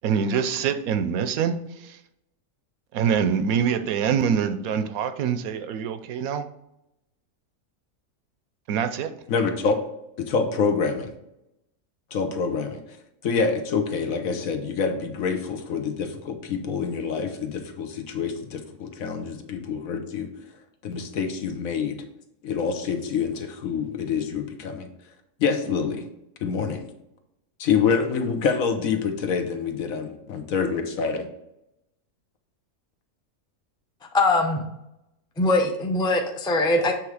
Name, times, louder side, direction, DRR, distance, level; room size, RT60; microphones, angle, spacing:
voice 1, 0.0-2.0 2.9-6.5 8.7-9.1, right 7 dB, 75° right, 10 dB, 1.0 m, -25 dB
voice 2, 9.3-9.8 10.2-11.1 12.1-12.8 13.2-20.3 20.8-22.0 22.4-24.9 25.4-26.0 26.4-26.8 27.6-31.3, left 5 dB, 70° left, 6 dB, 1.2 m, -26 dB
voice 3, 34.1-34.6 35.4-36.9, left 2 dB, 5° left, 2 dB, 0.4 m, -21 dB
7.7 x 3.5 x 4.8 m, 0.84 s
omnidirectional pair, 1.5 m